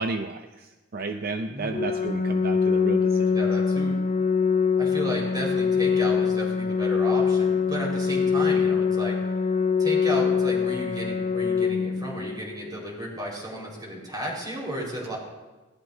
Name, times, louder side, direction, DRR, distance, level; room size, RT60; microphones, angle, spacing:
voice 1, 0.0-3.4, right 3 dB, 55° right, 6 dB, 0.6 m, -32 dB
voice 2, 1.5-1.9 3.3-3.9 4.8-9.2 9.8-15.2, equal, 20° right, -3 dB, 4.8 m, -33 dB
Organ, 1.7-12.7, left 5 dB, 35° left, 0.7 m, -24 dB
19.5 x 18.5 x 2.8 m, 1.2 s
head